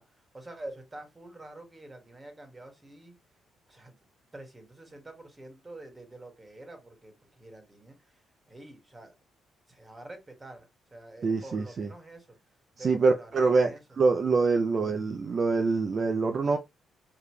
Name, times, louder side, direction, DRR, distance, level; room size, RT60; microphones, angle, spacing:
voice 1, 0.0-3.1 3.7-4.0 4.3-8.2 8.5-9.1 9.7-12.4 12.8-13.8, right 2 dB, 20° right, 2.2 m, -47 dB
voice 2, 11.2-11.9 12.8-16.6, right 4 dB, 45° right, 0.7 m, -25 dB
4.8 x 3.0 x 3.3 m
cardioid pair, 90°, 0 cm